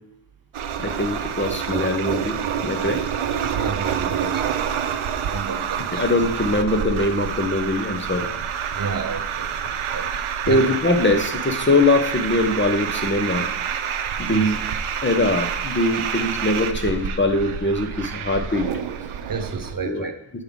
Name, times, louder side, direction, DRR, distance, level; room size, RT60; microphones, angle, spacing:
sound 1, 0.5-19.7, right 8 dB, 85° right, 0.7 m, -28 dB
voice 1, 0.8-3.0 5.9-8.3 10.5-13.5 14.2-14.6 15.0-18.7 19.8-20.1, left 2 dB, 25° left, 4 dB, 0.7 m, -22 dB
voice 2, 3.5-4.6 5.1-6.0 8.7-10.7 14.3-14.5 19.3-20.1, right 5 dB, 45° right, 6 dB, 0.7 m, -31 dB
7.2 x 5.6 x 3.5 m, 0.90 s
wide cardioid pair, 110°, 48 cm